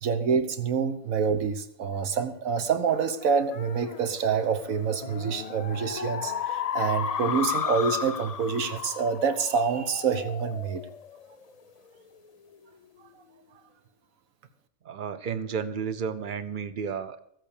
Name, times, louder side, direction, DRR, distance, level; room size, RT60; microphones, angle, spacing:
voice 1, 0.0-10.8, right 6 dB, 75° right, 10 dB, 1.5 m, -27 dB
sound 1, 2.9-11.7, left 7 dB, 55° left, 0.4 m, -34 dB
voice 2, 14.8-17.2, right 6 dB, 45° right, 13 dB, 0.9 m, -32 dB
15.0 x 8.3 x 6.6 m, 0.71 s
omnidirectional pair, 1.4 m